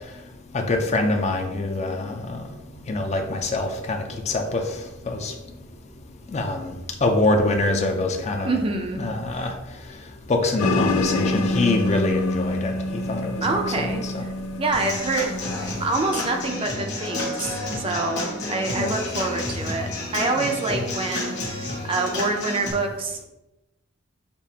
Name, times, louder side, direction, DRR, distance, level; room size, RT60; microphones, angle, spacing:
voice 1, 0.5-2.5 2.9-4.8 5.1-5.3 6.3-6.7 7.0-8.6 8.9-9.5 10.3-12.8 13.1-14.3 18.8-18.9 20.4-20.9, left 2 dB, 30° left, 4 dB, 0.4 m, -25 dB
voice 2, 8.4-9.0 9.3-9.4 13.4-14.3 14.6-15.3 15.8-21.6 21.9-23.3, right 3 dB, 25° right, 3 dB, 0.4 m, -26 dB
sound 1, 10.6-15.9, left 2 dB, 90° left, 0.5 m, -26 dB
Human voice / Acoustic guitar / Drum, 14.7-22.7, left 2 dB, 55° left, 1.4 m, -30 dB
6.8 x 2.5 x 2.8 m, 0.98 s
head